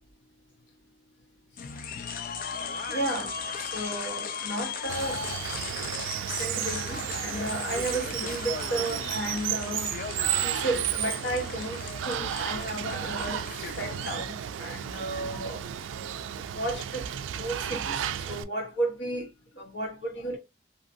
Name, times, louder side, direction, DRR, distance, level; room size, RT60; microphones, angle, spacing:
sound 1, 1.6-14.2, left 5 dB, 45° left, 0.4 m, -37 dB
voice 1, 2.9-3.3 3.6-5.2 6.3-13.4 13.8-15.6 16.4-17.1 17.4-19.3 19.6-20.4, right 1 dB, 65° left, 1.1 m, -33 dB
Water, 4.9-18.4, right 10 dB, 80° right, 0.3 m, -33 dB
2.7 x 2.6 x 2.5 m
head